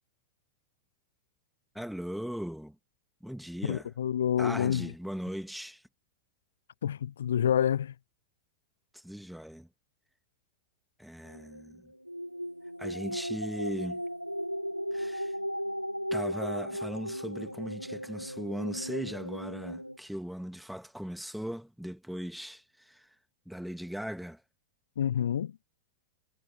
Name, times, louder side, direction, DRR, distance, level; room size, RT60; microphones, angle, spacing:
voice 1, 1.7-2.8 3.2-3.9 4.4-5.8 8.9-9.7 11.0-11.9 12.8-14.0 14.9-15.3 16.1-23.1 23.5-24.4, equal, ahead, 2.0 m, -38 dB
voice 2, 3.6-4.9 6.8-7.9 25.0-25.5, left 9 dB, 65° left, 0.9 m, -28 dB
sound 1, 11.3-20.0, equal, 90° right, 5.6 m, -36 dB
figure-of-eight pair, 90°, 0 cm